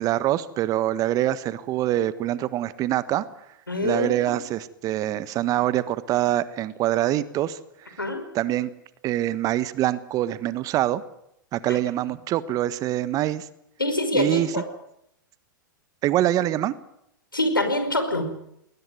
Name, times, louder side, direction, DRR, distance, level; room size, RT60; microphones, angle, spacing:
voice 1, 0.0-3.3 3.8-8.0 8.3-8.7 9.0-11.0 11.5-13.5 14.1-14.5 16.0-16.7, right 13 dB, 35° right, 16 dB, 1.3 m, -25 dB
voice 2, 3.7-4.1 8.0-8.2 13.8-14.6 17.3-18.3, left 1 dB, 90° left, 7 dB, 5.2 m, -24 dB
21.0 x 19.5 x 9.3 m, 0.78 s
figure-of-eight pair, 100°, 11 cm